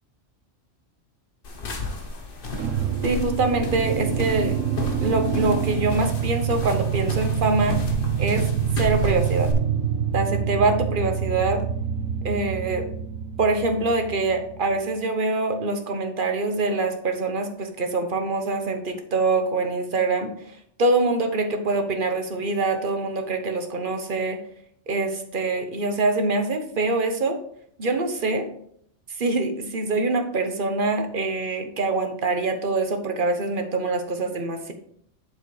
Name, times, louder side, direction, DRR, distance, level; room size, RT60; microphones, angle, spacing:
sound 1, 1.4-9.5, left 2 dB, 45° left, 1.2 m, -33 dB
sound 2, 2.6-14.8, right 8 dB, 85° right, 1.1 m, -26 dB
voice 1, 3.0-4.5 5.0-7.8 8.2-8.5 8.8-9.5 10.1-11.6 12.2-12.9 13.4-24.4 24.9-27.4 27.8-28.5 29.2-34.7, right 3 dB, 45° right, 6 dB, 1.2 m, -24 dB
8.2 x 7.0 x 3.3 m, 0.68 s
omnidirectional pair, 1.3 m